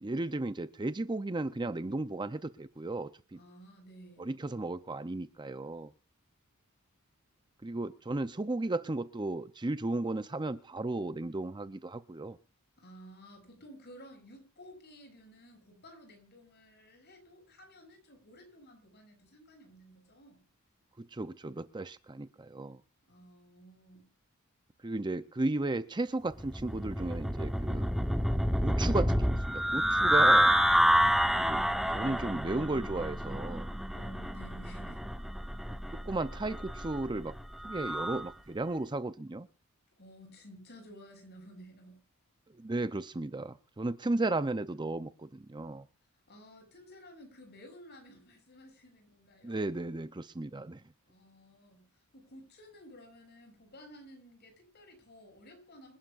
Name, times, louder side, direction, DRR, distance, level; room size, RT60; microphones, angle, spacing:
voice 1, 0.0-3.4 4.2-5.9 7.6-12.4 21.0-22.8 24.8-27.9 28.6-30.6 31.4-31.6 31.9-33.7 35.9-37.3 37.6-39.5 42.5-45.9 49.4-50.8, right 2 dB, 20° right, 12 dB, 0.6 m, -34 dB
voice 2, 3.3-4.3 12.8-20.4 23.1-24.1 33.9-35.0 40.0-42.0 46.3-49.6 51.1-56.0, equal, 50° left, 4 dB, 7.0 m, -54 dB
sound 1, 26.4-38.3, equal, ahead, 1.0 m, -28 dB
27.0 x 11.5 x 2.5 m, 0.32 s
head